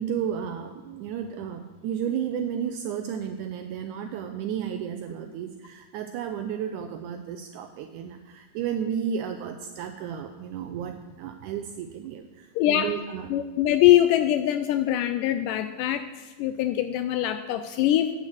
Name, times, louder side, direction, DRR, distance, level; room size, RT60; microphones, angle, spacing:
voice 1, 0.0-13.3, right 8 dB, 80° right, 7 dB, 1.8 m, -33 dB
voice 2, 12.6-12.9 13.3-18.1, left 13 dB, 80° left, 9 dB, 1.9 m, -23 dB
9.1 x 7.1 x 8.0 m, 1.3 s
omnidirectional pair, 4.1 m